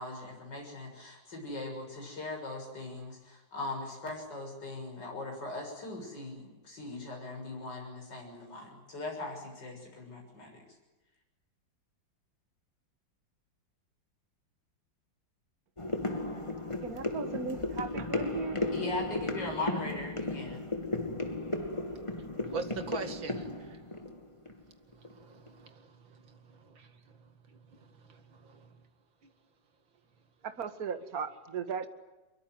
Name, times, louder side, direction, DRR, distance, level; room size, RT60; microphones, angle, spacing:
voice 1, 0.0-10.5 18.7-20.6, left 2 dB, 65° left, 7.4 m, -40 dB
sound 1, 15.8-25.1 25.5-25.6, left 2 dB, 15° left, 2.6 m, -35 dB
voice 2, 16.8-18.6 30.4-31.9, right 5 dB, 50° right, 2.1 m, -37 dB
voice 3, 22.4-23.8 24.9-28.8 29.2-29.3, right 4 dB, 85° right, 3.0 m, -43 dB
24.5 x 23.0 x 9.4 m
omnidirectional pair, 2.1 m